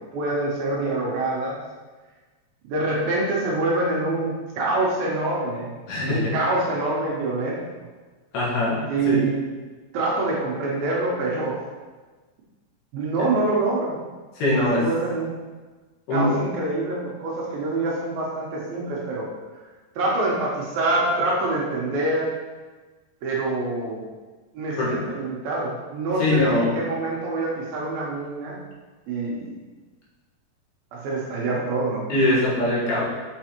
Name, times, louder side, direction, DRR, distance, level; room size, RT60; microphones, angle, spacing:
voice 1, 0.1-1.6 2.6-5.7 6.0-7.6 8.9-9.3 9.9-11.6 12.9-14.0 14.6-15.3 16.1-19.3 20.0-22.3 23.2-24.1 24.5-28.6 29.1-29.5 30.9-32.1, right 2 dB, 70° right, -4 dB, 2.6 m, -25 dB
voice 2, 5.9-6.4 8.3-9.3 14.4-14.9 16.1-16.4 24.8-25.0 26.2-26.8 32.1-33.1, left 2 dB, 75° left, -6 dB, 3.4 m, -22 dB
6.8 x 6.0 x 3.0 m, 1.3 s
omnidirectional pair, 4.8 m